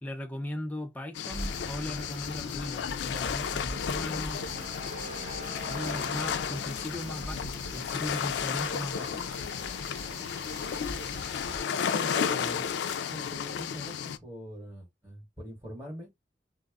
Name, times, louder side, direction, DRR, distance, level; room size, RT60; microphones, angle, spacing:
voice 1, 0.0-4.4 5.6-9.3, left 1 dB, 10° left, 0.3 m, -38 dB
sound 1, 1.1-14.2, left 7 dB, 90° left, 0.3 m, -33 dB
sound 2, 1.3-11.6, equal, 80° right, 1.0 m, -43 dB
sound 3, 4.3-7.1, equal, 45° right, 0.9 m, -42 dB
voice 2, 11.7-12.7 13.1-16.1, equal, 10° right, 1.2 m, -43 dB
2.1 x 2.0 x 3.4 m
head